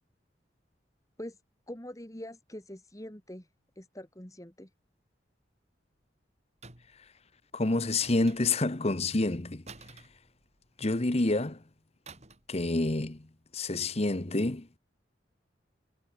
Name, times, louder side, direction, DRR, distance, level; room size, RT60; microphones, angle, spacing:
voice 1, 1.7-3.5 3.8-4.7, left 1 dB, 20° left, 3.0 m, -44 dB
sound 1, 6.6-7.1 8.0-8.8 9.7-10.8 12.1-12.6 12.8-13.1, right 4 dB, 35° right, 5.5 m, -51 dB
voice 2, 7.5-9.6 10.8-11.6 12.5-13.2 13.5-14.7, left 2 dB, 35° left, 1.0 m, -28 dB
head